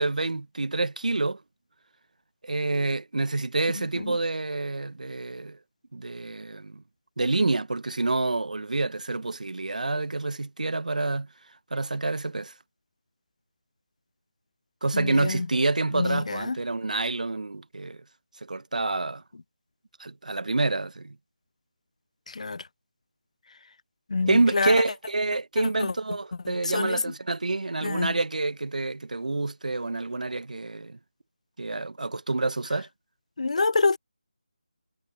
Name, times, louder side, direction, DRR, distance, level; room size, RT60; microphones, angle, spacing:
voice 1, 0.0-1.4 2.4-5.6 5.9-6.8 7.2-11.3 11.7-12.5 14.8-18.0 18.4-19.2 20.0-21.2 24.3-31.0 31.6-32.9, right 2 dB, 85° right, 0.8 m, -27 dB
voice 2, 3.8-4.2 14.9-15.5 15.9-16.6 22.3-22.6 24.1-24.7 25.8-25.9 26.5-27.0 27.8-28.2 33.4-34.0, left 3 dB, 60° left, 0.3 m, -27 dB
figure-of-eight pair, 170°, 4 cm